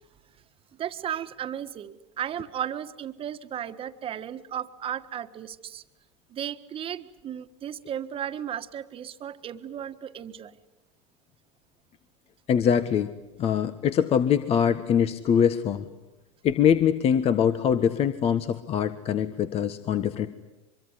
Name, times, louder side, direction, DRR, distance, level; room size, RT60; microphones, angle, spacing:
voice 1, 0.8-5.8 6.3-10.6, right 9 dB, 40° right, 10 dB, 1.6 m, -35 dB
voice 2, 12.5-15.9 16.4-20.3, left 8 dB, 40° left, 11 dB, 1.4 m, -23 dB
24.5 x 23.5 x 9.9 m, 0.98 s
hypercardioid pair, 95°, 15 cm